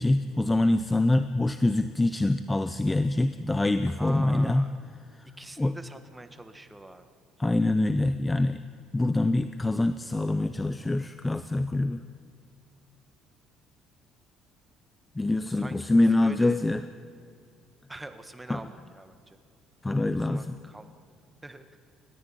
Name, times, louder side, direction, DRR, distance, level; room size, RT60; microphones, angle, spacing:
voice 1, 0.0-4.7 5.2-5.3 5.6-5.8 7.4-8.6 8.9-12.0 15.1-16.8 18.5-18.6 19.8-20.5, left 2 dB, 10° left, 11 dB, 0.7 m, -25 dB
voice 2, 3.9-4.8 5.4-7.0 15.5-16.6 17.9-19.4 20.2-20.9 21.4-21.7, right 2 dB, 10° right, 8 dB, 1.5 m, -44 dB
30.0 x 14.0 x 10.0 m, 2.4 s
cardioid pair, 140°, 0 cm